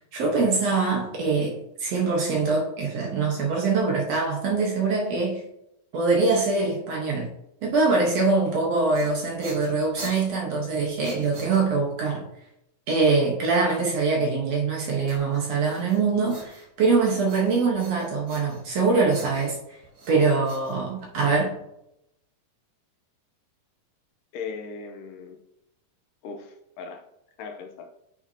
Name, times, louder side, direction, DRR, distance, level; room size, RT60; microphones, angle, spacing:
voice 1, 0.1-5.5 5.9-7.3 7.6-12.3 12.9-19.8 20.1-21.6, right 4 dB, 60° right, 2.1 m, -23 dB
sound 1, 8.7-12.0 15.1-16.9 17.2-18.8 19.1-21.3, right 2 dB, 40° right, 1.7 m, -44 dB
voice 2, 24.3-25.4 26.2-27.0 27.4-27.9, left 5 dB, 85° left, 2.4 m, -38 dB
9.7 x 5.9 x 2.8 m
omnidirectional pair, 3.8 m